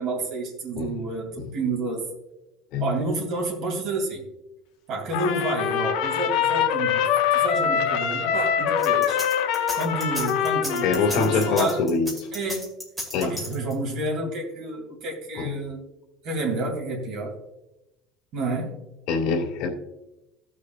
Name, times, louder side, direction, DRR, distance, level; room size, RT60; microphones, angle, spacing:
voice 1, 0.0-2.1 2.8-4.2 4.9-9.2 9.7-11.8 12.3-12.7 13.2-15.8 16.2-17.4 18.3-18.8, right 2 dB, 50° right, 0 dB, 2.6 m, -30 dB
Trumpet, 5.1-11.8, left 8 dB, 70° left, 0.8 m, -24 dB
sound 1, 8.8-13.9, equal, 10° right, 1.9 m, -34 dB
voice 2, 10.8-12.3 13.1-13.3 15.4-15.7 19.1-19.7, left 4 dB, 55° left, 0 dB, 1.9 m, -24 dB
16.5 x 6.6 x 2.4 m, 0.93 s
cardioid pair, 170°, 0 cm